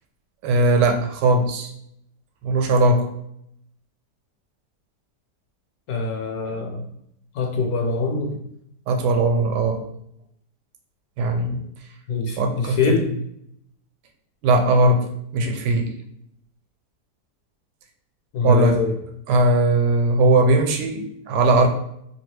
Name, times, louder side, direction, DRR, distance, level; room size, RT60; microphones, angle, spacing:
voice 1, 0.4-1.7 2.4-3.1 8.9-9.8 11.2-11.6 12.4-13.0 14.4-15.9 18.4-18.8 19.3-21.7, right 2 dB, 85° right, 5 dB, 1.2 m, -19 dB
voice 2, 5.9-6.9 7.3-8.3 12.1-13.1 18.3-18.9, left 4 dB, 70° left, 1 dB, 1.0 m, -24 dB
2.8 x 2.7 x 3.1 m, 0.74 s
omnidirectional pair, 1.8 m